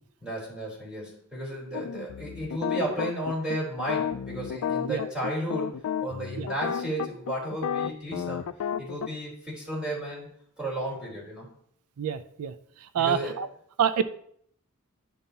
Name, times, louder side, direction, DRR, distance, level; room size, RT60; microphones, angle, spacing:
voice 1, 0.2-8.5 8.8-10.3 10.6-11.5 13.0-13.4, right 1 dB, 5° right, -6 dB, 3.5 m, -33 dB
sound 1, 1.7-9.1, left 8 dB, 70° left, 0.3 m, -31 dB
voice 2, 12.0-12.5 12.9-13.5 13.8-14.0, right 8 dB, 90° right, 12 dB, 0.4 m, -26 dB
11.5 x 5.3 x 2.8 m, 0.65 s
head